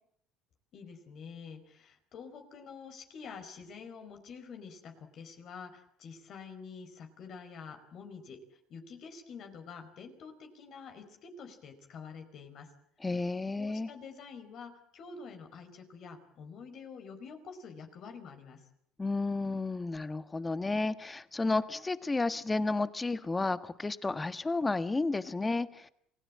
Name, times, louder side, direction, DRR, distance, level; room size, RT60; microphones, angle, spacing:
voice 1, 0.7-12.7 13.6-18.6, left 5 dB, 55° left, 6 dB, 4.8 m, -47 dB
voice 2, 13.0-13.9 19.0-25.9, left 3 dB, 20° left, 12 dB, 1.5 m, -32 dB
28.0 x 17.0 x 8.8 m, 0.72 s
supercardioid pair, 80°, 0 cm